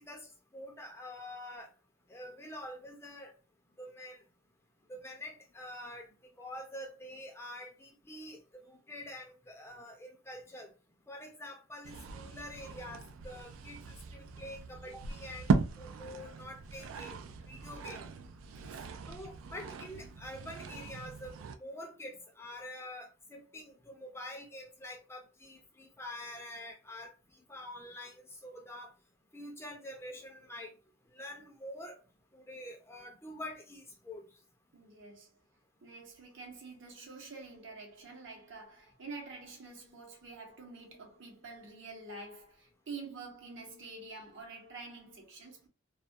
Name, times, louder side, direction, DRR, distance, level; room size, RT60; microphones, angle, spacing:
voice 1, 0.0-1.7 2.1-3.3 3.8-4.2 4.9-6.1 6.4-10.7 11.1-18.0 19.1-27.1 27.5-28.9 29.3-30.8 31.1-32.0 32.3-34.2, left 1 dB, 15° left, 0.4 m, -46 dB
sound 1, 11.8-21.6, right 4 dB, 90° right, 0.3 m, -38 dB
voice 2, 18.5-18.9 34.7-35.3 35.8-45.7, right 3 dB, 65° right, 0.8 m, -47 dB
2.3 x 2.2 x 2.5 m
head